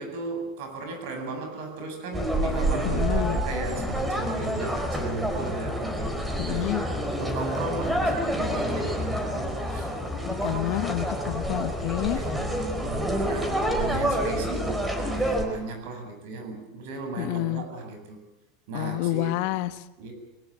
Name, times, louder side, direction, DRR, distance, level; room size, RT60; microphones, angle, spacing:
voice 1, 0.0-6.7 7.1-9.9 12.1-18.2 18.7-19.3 20.0-20.1, right 3 dB, 65° right, 6 dB, 7.8 m, -36 dB
sound 1, 2.1-15.4, right 1 dB, 5° right, 4.3 m, -28 dB
voice 2, 2.8-3.4 6.4-6.8 10.3-12.2 17.2-17.7 18.7-19.8, left 17 dB, 60° left, 12 dB, 1.3 m, -29 dB
23.0 x 19.5 x 8.9 m, 0.91 s
supercardioid pair, 155°, 0 cm